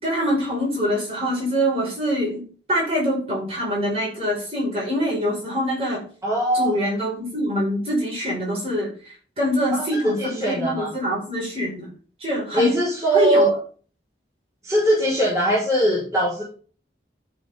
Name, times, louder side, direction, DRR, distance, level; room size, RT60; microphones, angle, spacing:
voice 1, 0.0-2.4 2.7-6.1 6.5-11.9 12.2-12.8 13.1-13.5, equal, 35° right, -3 dB, 5.3 m, -24 dB
voice 2, 6.2-6.8 9.7-10.9 12.5-13.5 14.6-16.4, right 1 dB, 20° right, -8 dB, 4.3 m, -21 dB
13.0 x 5.5 x 3.7 m, 0.40 s
head